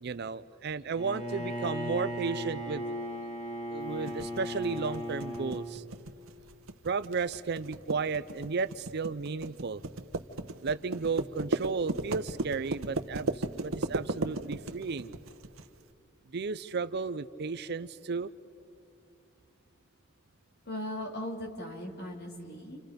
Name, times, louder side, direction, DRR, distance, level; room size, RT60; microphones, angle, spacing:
voice 1, 0.0-2.8 3.7-5.8 6.8-9.8 10.6-15.1 16.3-18.3, right 4 dB, 50° right, 14 dB, 0.5 m, -34 dB
Bowed string instrument, 1.0-5.8, equal, 30° left, 1.5 m, -37 dB
sound 1, 4.1-15.7, right 2 dB, 75° right, 1.0 m, -35 dB
voice 2, 20.6-22.8, left 1 dB, 50° left, 1 dB, 3.0 m, -38 dB
30.0 x 28.0 x 5.2 m, 2.5 s
head